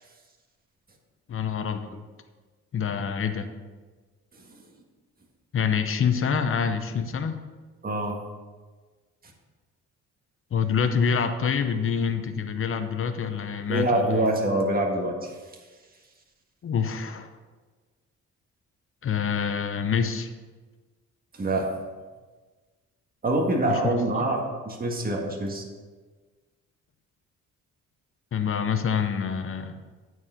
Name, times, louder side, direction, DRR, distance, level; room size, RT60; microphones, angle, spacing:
voice 1, 1.3-2.0 2.7-3.5 5.5-7.4 10.5-14.2 16.6-17.3 19.0-20.3 23.6-23.9 28.3-29.7, left 6 dB, 45° left, 9 dB, 0.8 m, -26 dB
voice 2, 7.8-8.2 13.7-15.3 21.3-21.7 23.2-25.6, right 1 dB, 30° right, 1 dB, 1.6 m, -25 dB
8.8 x 4.7 x 5.6 m, 1.4 s
cardioid pair, 90°, 30 cm